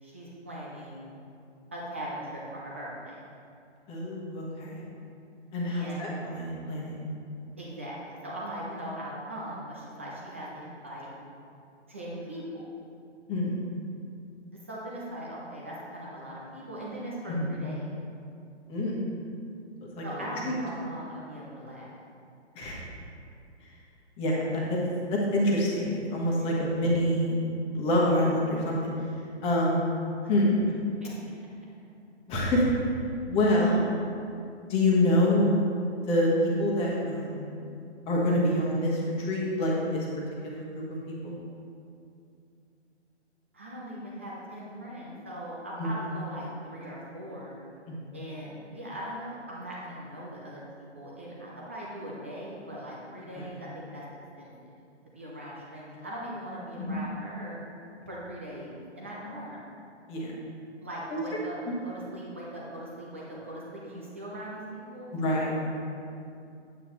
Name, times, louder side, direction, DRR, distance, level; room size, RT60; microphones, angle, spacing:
voice 1, 0.0-1.1 1.7-3.2 5.7-6.0 7.6-11.1 11.9-12.7 14.7-17.8 20.0-22.0 26.4-26.5 31.0-31.3 43.5-47.6 48.1-50.6 50.9-54.0 54.4-54.5 55.1-57.6 58.1-59.6 60.8-61.6 61.8-65.1, right 1 dB, 10° right, -5 dB, 0.4 m, -40 dB
voice 2, 3.9-4.8 5.5-7.0 13.3-13.6 17.3-17.5 18.7-19.0 19.8-20.0 20.4-20.5 22.5-22.8 24.2-24.8 25.3-27.4 27.7-28.9 29.4-29.9 30.3-30.6 32.3-32.6 33.3-33.8 34.7-35.7 36.0-37.5 38.1-40.0 40.4-41.4 45.8-45.9 47.9-48.1 53.3-53.5 56.8-56.9 60.1-60.3 61.1-61.2 61.7-61.8 65.1-65.7, left 1 dB, 15° left, -4 dB, 1.3 m, -26 dB
9.0 x 8.3 x 3.1 m, 2.5 s
figure-of-eight pair, 135°, 35 cm